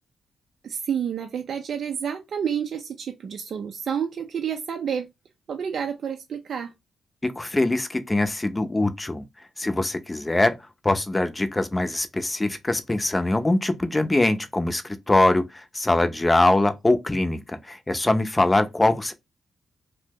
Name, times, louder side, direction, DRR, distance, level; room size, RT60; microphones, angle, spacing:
voice 1, 0.6-5.1 5.5-6.7, right 8 dB, 65° right, 0.4 m, -29 dB
voice 2, 7.4-9.2 9.6-10.6 10.8-19.1, left 2 dB, 25° left, 0.6 m, -23 dB
2.7 x 2.1 x 3.4 m
hypercardioid pair, 45°, 0 cm